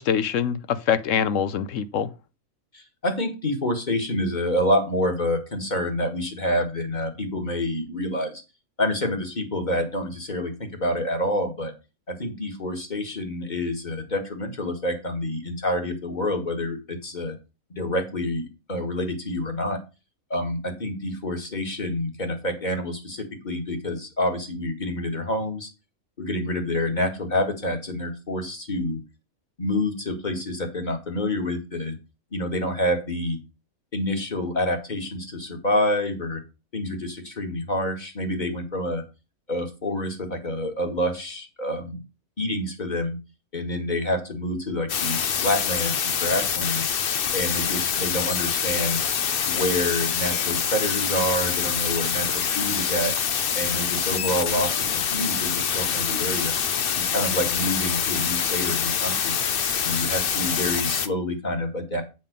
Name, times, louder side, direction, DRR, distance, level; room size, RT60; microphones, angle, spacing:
voice 1, 0.0-2.1, left 8 dB, 70° left, 1.0 m, -24 dB
voice 2, 2.7-8.4 8.8-11.7 12.1-17.4 17.7-19.8 20.3-25.7 26.2-29.0 29.6-32.0 32.3-33.4 33.9-36.4 36.7-39.0 39.5-42.0 42.4-43.2 43.5-46.9 47.3-49.0 49.5-53.1 53.6-56.5 57.0-59.4 59.8-62.0, left 1 dB, 35° left, 1.9 m, -27 dB
sound 1, 44.9-61.1, left 7 dB, 50° left, 0.8 m, -25 dB
7.6 x 5.4 x 5.2 m
omnidirectional pair, 1.4 m